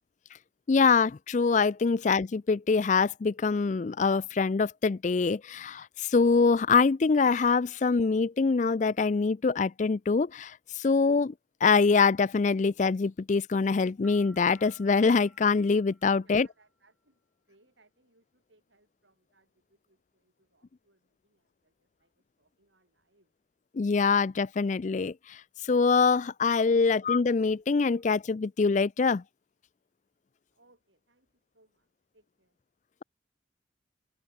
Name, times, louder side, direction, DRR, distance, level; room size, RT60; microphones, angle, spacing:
voice 1, 0.7-11.3 11.6-16.5 23.7-29.2, left 4 dB, 40° left, 0.4 m, -24 dB
sound 1, 14.0-16.7, equal, ahead, 4.6 m, -59 dB
voice 2, 16.2-23.3 26.8-27.0 30.5-32.6, right 2 dB, 75° right, 7.5 m, -68 dB
head